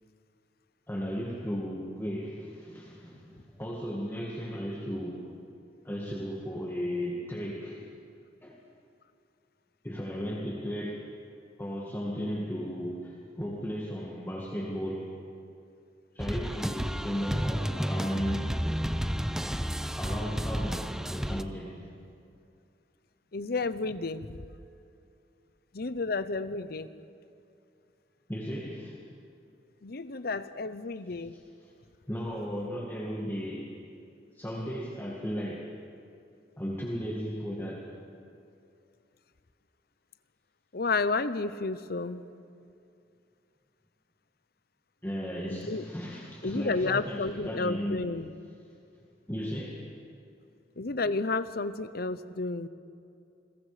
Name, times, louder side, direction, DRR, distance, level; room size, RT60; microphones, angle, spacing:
voice 1, 0.9-5.3 5.8-7.9 8.4-8.6 9.8-11.0 11.6-15.1 16.1-18.5 19.1-21.9 28.3-29.0 31.3-31.7 32.1-33.7 34.3-35.7 36.6-37.9 45.0-48.1 49.3-50.0, equal, 15° left, -3 dB, 2.1 m, -35 dB
sound 1, 16.2-21.4, equal, 5° right, 0.6 m, -31 dB
voice 2, 23.3-24.4 25.7-26.9 29.8-31.4 40.7-42.2 45.5-45.8 46.4-48.3 50.8-52.7, left 3 dB, 60° left, 13 dB, 0.8 m, -31 dB
29.0 x 22.0 x 5.1 m, 2.5 s
head